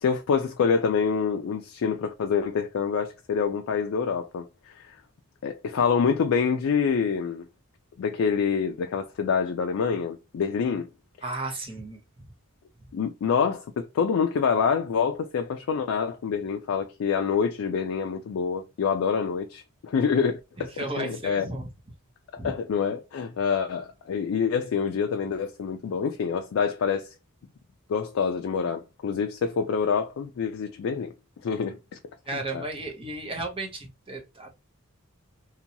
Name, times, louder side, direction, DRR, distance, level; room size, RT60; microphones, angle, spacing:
voice 1, 0.0-5.0 5.4-7.5 8.0-10.9 12.9-21.4 22.3-27.1 27.9-31.1 31.4-31.8 32.5-32.6, left 6 dB, 65° left, 0.3 m, -26 dB
voice 2, 11.2-12.0 20.6-21.7 22.4-22.5 32.3-34.5, right 2 dB, 25° right, 0.6 m, -34 dB
2.8 x 2.2 x 2.6 m
head